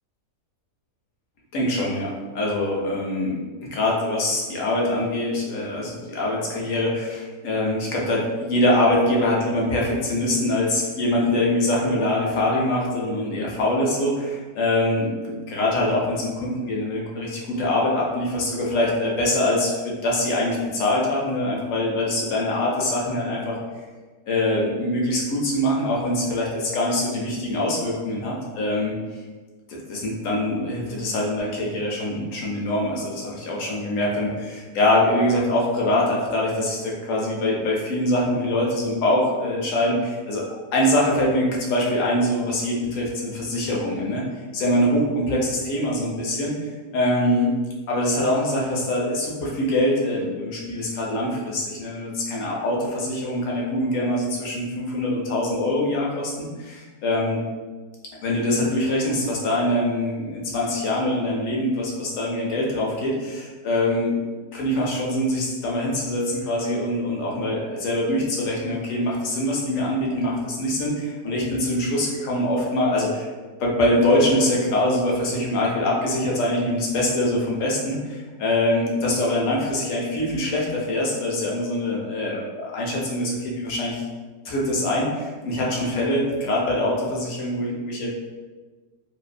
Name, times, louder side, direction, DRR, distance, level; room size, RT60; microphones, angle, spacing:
voice 1, 1.5-23.6 24.3-28.9 29.7-40.5 40.7-44.3 44.5-47.5 47.9-56.3 56.6-57.4 58.2-64.2 64.5-73.3 73.6-84.0 84.4-88.1, left 1 dB, 65° left, -2 dB, 0.9 m, -24 dB
2.7 x 2.2 x 2.4 m, 1.4 s
omnidirectional pair, 1.7 m